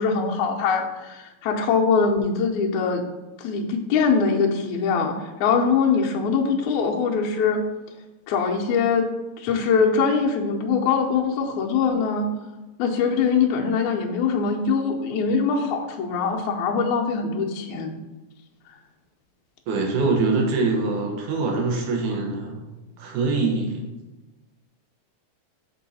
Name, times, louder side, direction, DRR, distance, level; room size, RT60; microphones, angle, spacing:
voice 1, 0.0-3.0 3.4-7.6 8.3-9.1 9.4-12.3 12.8-18.0, left 5 dB, 75° left, 0 dB, 2.0 m, -22 dB
voice 2, 19.7-22.6 23.0-23.8, right 3 dB, 80° right, 1 dB, 2.6 m, -24 dB
6.4 x 4.5 x 4.1 m, 1.1 s
omnidirectional pair, 3.5 m